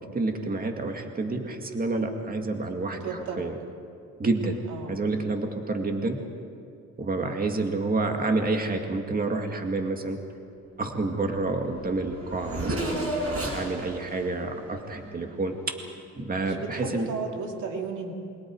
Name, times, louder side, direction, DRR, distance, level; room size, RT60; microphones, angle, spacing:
voice 1, 0.1-3.5 4.2-4.6 4.9-6.2 7.0-10.2 10.8-15.8 16.2-17.1, right 3 dB, 30° right, 3 dB, 2.3 m, -29 dB
voice 2, 2.9-3.5 4.7-5.0 7.2-7.3 16.4-18.1, right 5 dB, 80° right, 2 dB, 2.8 m, -34 dB
Race car auto racing / Accelerating revving vroom, 11.4-11.5 11.7-15.7, right 1 dB, 50° right, 5.9 m, -33 dB
28.0 x 23.0 x 4.9 m, 2.5 s
cardioid pair, 90°, 30 cm